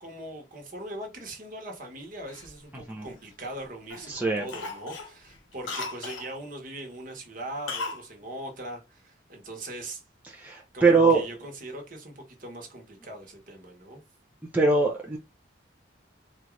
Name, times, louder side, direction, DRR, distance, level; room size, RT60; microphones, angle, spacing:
voice 1, 0.0-10.0 10.7-14.0, right 1 dB, 45° right, 1.2 m, -40 dB
Cough, 2.3-3.5 3.9-4.1 4.5-6.3 7.7-8.0 8.3-8.4, left 3 dB, 80° left, 0.9 m, -37 dB
voice 2, 4.1-4.4 10.3-11.2 14.5-15.2, right 3 dB, 10° right, 0.6 m, -22 dB
4.4 x 2.5 x 3.1 m
head